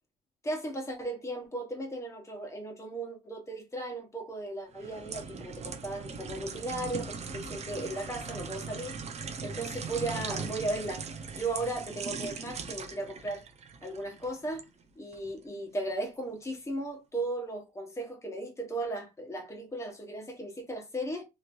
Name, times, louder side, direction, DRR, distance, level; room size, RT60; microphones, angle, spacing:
voice 1, 0.4-9.0 9.4-11.1 11.3-13.4 13.8-14.6 15.0-21.3, right 1 dB, 15° left, 1.2 m, -36 dB
sound 1, 4.7-14.7 15.1-15.3, right 5 dB, 40° right, 0.7 m, -39 dB
3.2 x 2.9 x 2.6 m
cardioid pair, 110°, 17 cm